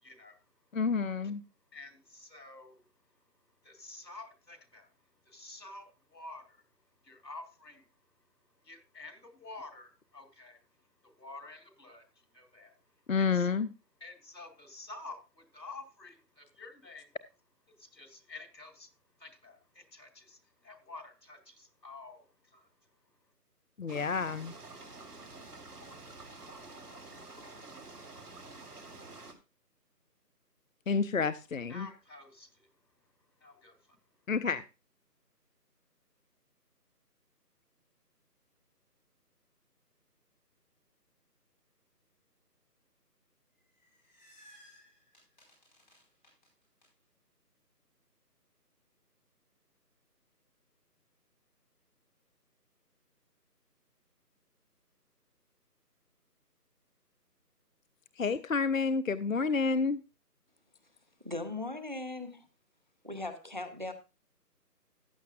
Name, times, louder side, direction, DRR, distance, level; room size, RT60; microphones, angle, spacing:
voice 1, 0.0-0.4 1.7-2.9 3.6-4.9 5.2-6.6 7.0-7.9 8.6-10.6 11.0-12.8 13.2-13.5 14.0-17.1 17.7-18.9 19.2-22.7 31.7-32.7 33.4-34.0, left 3 dB, 90° left, 3.0 m, -50 dB
voice 2, 0.7-1.4 13.1-13.7 23.8-24.5 30.9-31.9 34.3-34.6 58.2-60.0, left 5 dB, 55° left, 0.5 m, -29 dB
sound 1, 23.9-29.3, right 3 dB, 65° right, 2.1 m, -49 dB
sound 2, 43.6-46.9, equal, 30° left, 4.6 m, -60 dB
voice 3, 61.2-62.5 63.0-63.9, left 2 dB, 30° right, 0.7 m, -38 dB
14.5 x 9.3 x 2.4 m
figure-of-eight pair, 165°, 49 cm